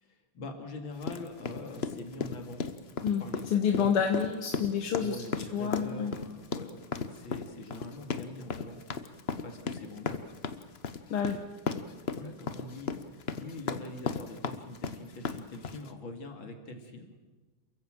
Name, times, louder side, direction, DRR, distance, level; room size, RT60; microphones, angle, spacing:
voice 1, 0.0-2.6 3.2-3.4 3.8-4.0 5.0-8.8 9.4-10.2 12.1-17.1, left 2 dB, 65° left, 4 dB, 3.2 m, -43 dB
sound 1, 1.0-15.9, left 5 dB, 45° left, 0.8 m, -35 dB
voice 2, 3.5-5.2 5.5-6.1 11.1-11.4, left 7 dB, 80° left, 4 dB, 2.2 m, -28 dB
28.0 x 15.5 x 7.7 m, 1.3 s
omnidirectional pair, 2.4 m